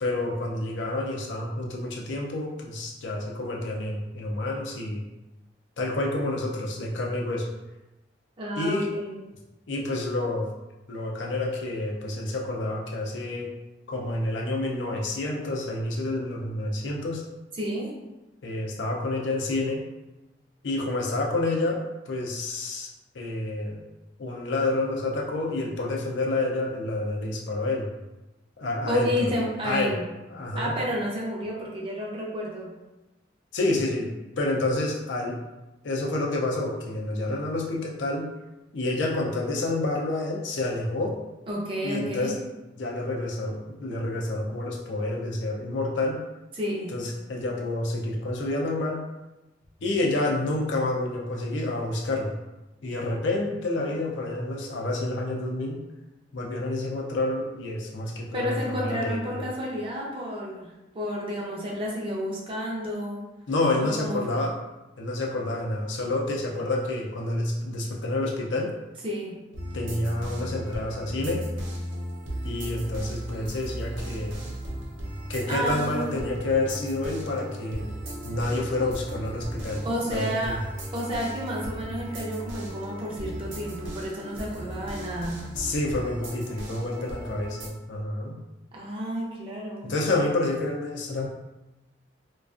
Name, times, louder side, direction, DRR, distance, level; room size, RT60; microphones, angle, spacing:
voice 1, 0.0-5.0 5.8-7.5 8.6-8.9 9.7-10.5 10.9-13.5 13.9-17.2 18.4-19.8 20.6-22.9 23.1-23.8 24.2-27.9 28.6-29.1 29.6-29.9 30.3-30.7 33.5-34.1 34.4-35.4 35.8-38.2 38.7-41.2 41.8-42.3 42.8-46.2 46.9-49.0 49.8-52.3 52.8-55.8 56.3-59.5 63.5-64.5 65.0-68.7 69.7-71.4 72.4-74.4 75.3-77.9 78.2-79.8 80.1-80.6 85.5-88.4 89.8-91.3, left 2 dB, 75° left, -1 dB, 0.5 m, -28 dB
voice 2, 8.4-9.2 17.6-17.9 28.9-30.0 30.5-32.7 41.5-42.3 46.5-46.9 58.3-63.2 63.8-64.5 69.0-69.4 75.5-76.1 79.8-80.6 80.9-85.4 88.7-89.9, equal, 30° right, -3 dB, 0.5 m, -31 dB
sound 1, 69.5-87.7, right 1 dB, 80° right, 0.6 m, -36 dB
2.4 x 2.3 x 2.4 m, 1.0 s
head